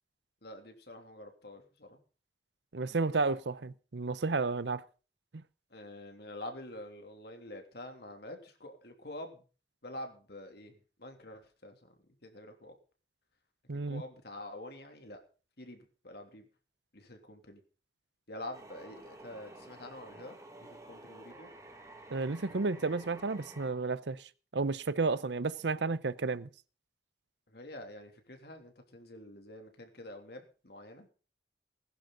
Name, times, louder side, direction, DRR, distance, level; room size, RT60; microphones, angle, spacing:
voice 1, 0.4-2.0 5.7-9.4 9.8-11.8 12.2-12.7 13.9-15.2 15.6-16.4 16.9-17.6 18.3-21.5 27.5-31.1, left 1 dB, 60° left, 3.0 m, -47 dB
voice 2, 2.7-4.8 13.7-14.0 22.1-24.2 24.5-26.5, right 3 dB, 75° right, 0.7 m, -32 dB
sound 1, 18.5-23.7, right 1 dB, 20° right, 2.0 m, -51 dB
20.0 x 11.5 x 4.0 m
head